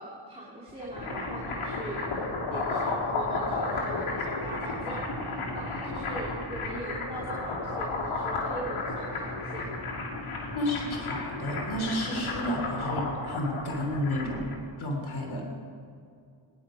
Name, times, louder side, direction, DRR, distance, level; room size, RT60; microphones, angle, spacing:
voice 1, 0.0-5.1 5.5-9.7, right 1 dB, 15° right, -6 dB, 3.0 m, -40 dB
sound 1, 0.7-14.6, left 3 dB, 90° left, 3.3 m, -33 dB
voice 2, 10.5-14.5 14.8-15.6, equal, 70° left, 1 dB, 3.2 m, -31 dB
22.0 x 11.0 x 5.0 m, 2.4 s
cardioid pair, 75°, 49 cm